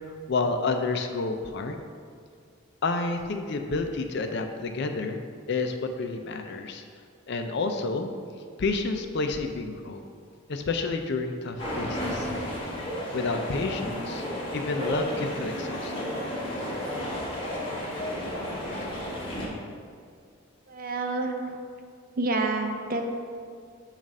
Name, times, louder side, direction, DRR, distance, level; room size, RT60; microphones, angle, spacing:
voice 1, 0.1-1.7 2.8-5.2 5.5-6.8 7.3-8.1 8.6-10.0 10.5-12.3 13.1-14.3 14.5-16.2, left 3 dB, 55° left, 6 dB, 0.4 m, -30 dB
sound 1, 11.6-19.5, equal, 25° left, 1.1 m, -32 dB
voice 2, 20.7-21.6 22.2-23.0, right 3 dB, 45° right, 4 dB, 0.5 m, -28 dB
7.2 x 2.5 x 5.3 m, 2.2 s
head